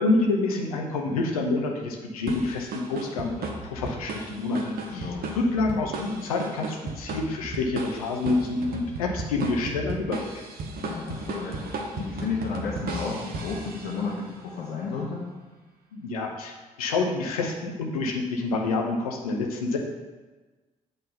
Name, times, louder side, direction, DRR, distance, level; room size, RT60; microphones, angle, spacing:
voice 1, 0.0-10.3 15.9-19.8, left 3 dB, 85° left, 1 dB, 0.8 m, -27 dB
sound 1, 2.3-14.2, right 3 dB, 55° right, 1.0 m, -35 dB
voice 2, 4.9-5.4 10.8-15.3, left 4 dB, 65° left, -5 dB, 1.2 m, -32 dB
8.0 x 3.9 x 5.6 m, 1.3 s
figure-of-eight pair, 40°, 18 cm